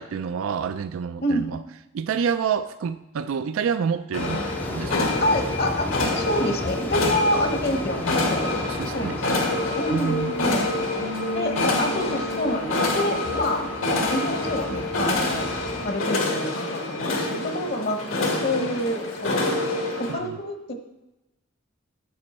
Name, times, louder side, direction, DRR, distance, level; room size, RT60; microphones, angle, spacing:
voice 1, 0.0-1.6 1.9-4.4 4.7-5.2 8.7-9.2 9.9-10.3 20.1-20.4, right 7 dB, 80° right, 12 dB, 0.4 m, -28 dB
sound 1, 4.1-20.1, left 2 dB, 85° left, 1.9 m, -27 dB
sound 2, 4.1-15.9, left 1 dB, 10° left, 0.4 m, -35 dB
voice 2, 5.2-8.6 8.9-9.3 9.8-10.7 11.3-13.7 14.1-15.5 15.8-19.6 20.0-20.7, left 1 dB, 50° left, 5 dB, 1.0 m, -27 dB
Bass guitar, 11.0-17.2, left 2 dB, 55° right, 0.7 m, -41 dB
9.7 x 7.8 x 4.2 m, 0.96 s
head